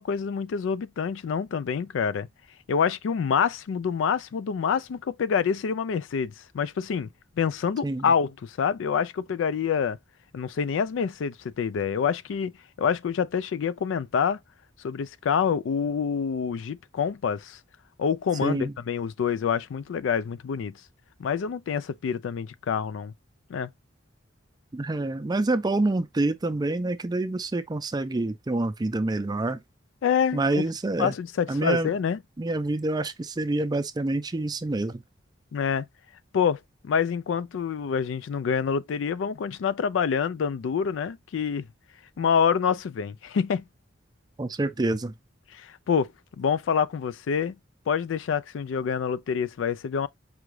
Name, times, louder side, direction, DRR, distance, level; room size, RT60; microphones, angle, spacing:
voice 1, 0.0-2.3 2.7-7.1 7.4-10.0 10.3-12.5 12.8-14.4 14.8-17.6 18.0-20.7 21.2-23.1 23.5-23.7 30.0-30.6 31.0-32.2 35.5-35.9 36.3-41.7 42.2-43.6 45.5-46.1 46.4-47.6 47.9-50.1, left 6 dB, 80° left, 0.3 m, -27 dB
voice 2, 18.4-18.7 24.7-29.6 30.3-31.1 31.5-31.9 32.4-35.0 44.4-45.1, right 2 dB, 20° right, 0.4 m, -27 dB
4.9 x 2.3 x 3.1 m
head